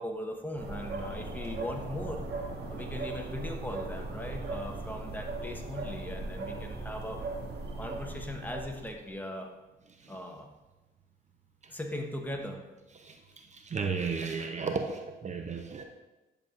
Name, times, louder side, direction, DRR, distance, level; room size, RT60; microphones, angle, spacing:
voice 1, 0.0-2.2 2.7-7.2 7.7-9.5 10.1-10.5 11.7-12.6, left 1 dB, 10° left, 2 dB, 1.1 m, -39 dB
sound 1, 0.6-9.1, right 2 dB, 55° right, 1.4 m, -38 dB
voice 2, 13.0-15.8, right 5 dB, 35° right, 5 dB, 0.6 m, -34 dB
10.5 x 6.8 x 2.5 m, 1.1 s
cardioid pair, 90°, 20 cm